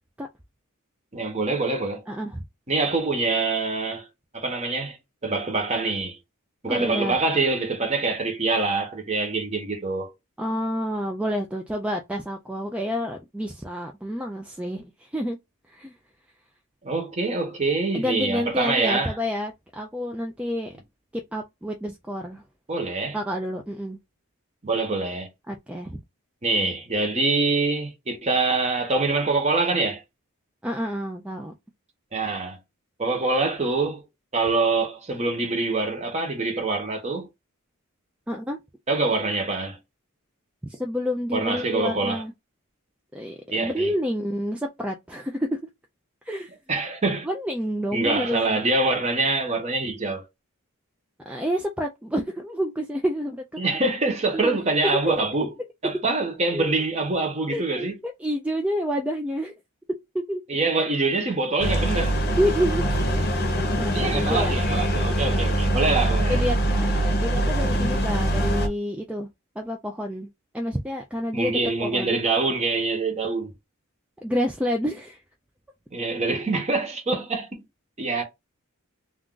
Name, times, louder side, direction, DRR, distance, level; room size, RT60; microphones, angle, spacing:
voice 1, 1.1-2.0 2.7-4.1 4.3-5.0 5.2-6.2 6.6-10.1 16.8-19.1 22.7-23.2 24.6-25.3 26.4-30.0 32.1-32.6 33.0-34.0 34.3-37.3 38.9-39.8 41.3-42.2 43.5-43.9 46.7-47.3 47.9-50.2 53.6-55.5 55.8-57.9 60.5-62.2 63.9-66.4 71.3-73.5 75.9-77.6 78.0-78.2, right 3 dB, 30° right, 0.9 m, -25 dB
voice 2, 2.1-2.4 6.7-7.2 10.4-15.4 15.7-15.9 17.9-20.8 21.3-22.4 23.1-24.0 25.5-26.0 30.6-31.5 38.3-38.6 40.6-42.3 43.1-45.6 46.3-46.5 47.2-48.6 51.3-53.8 54.3-54.6 56.5-56.7 57.5-59.5 60.1-60.4 62.4-62.9 63.3-64.6 66.3-69.3 69.6-70.3 70.5-72.2 74.2-75.2, equal, 5° right, 0.3 m, -29 dB
sound 1, 61.6-68.7, right 1 dB, 50° left, 0.7 m, -23 dB
2.4 x 2.4 x 3.7 m
head